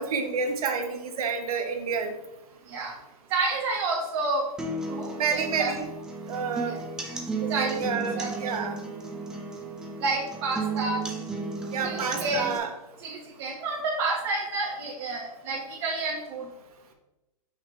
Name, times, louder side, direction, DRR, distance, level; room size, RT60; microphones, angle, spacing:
voice 1, 0.0-2.2 5.2-5.8 6.3-6.8 7.4-8.7 11.7-12.7, right 5 dB, 75° right, 6 dB, 1.2 m, -29 dB
voice 2, 3.3-4.4 4.8-5.7 6.7-6.8 7.5-8.5 10.0-11.0 11.8-12.5 13.0-16.5, right 3 dB, 40° right, -2 dB, 1.2 m, -30 dB
sound 1, 4.6-12.6, right 3 dB, 5° right, 0.3 m, -34 dB
6.3 x 5.7 x 3.2 m, 0.94 s
hypercardioid pair, 165°, 19 cm